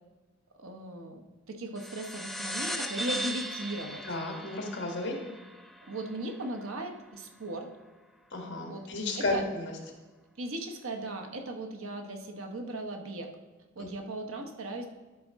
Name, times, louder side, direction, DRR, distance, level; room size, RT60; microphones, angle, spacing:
voice 1, 0.6-1.2 1.5-4.0 5.8-7.7 8.7-8.9 9.1-9.5 10.4-13.3 13.8-14.9, right 2 dB, 75° right, 4 dB, 1.0 m, -37 dB
sound 1, 1.8-6.7, equal, ahead, 0.4 m, -38 dB
voice 2, 4.0-5.2 8.3-9.7 13.8-13.9, left 2 dB, 55° left, 1 dB, 1.6 m, -33 dB
12.0 x 5.0 x 3.6 m, 1.2 s
head